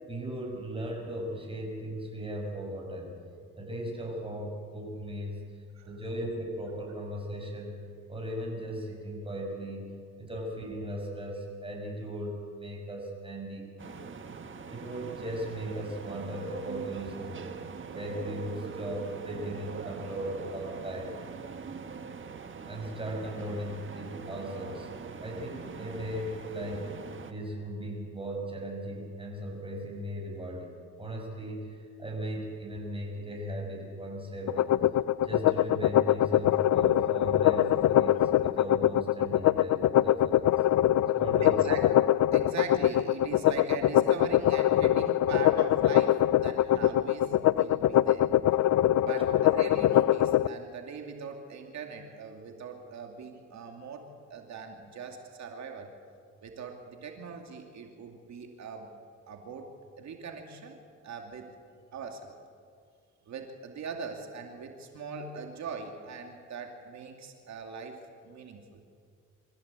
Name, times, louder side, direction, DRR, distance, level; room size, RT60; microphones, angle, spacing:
voice 1, 0.1-3.1 3.6-5.4 5.8-7.8 8.1-9.9 10.2-14.1 14.7-17.5 17.9-21.2 22.6-24.9 25.2-26.9 27.3-34.7 35.2-40.5 41.1-41.8, equal, 20° right, 1 dB, 6.8 m, -37 dB
sound 1, 13.8-27.3, right 5 dB, 40° right, 1.7 m, -42 dB
sound 2, 34.5-50.5, left 13 dB, 65° left, 0.6 m, -23 dB
voice 2, 41.4-41.8 42.3-48.3 49.0-55.9 56.4-58.9 59.3-59.7 60.0-61.5 61.9-62.3 63.3-68.0 68.2-68.8, right 5 dB, 65° right, 3 dB, 2.6 m, -41 dB
25.5 x 15.0 x 8.4 m, 2.1 s
cardioid pair, 90°, 30 cm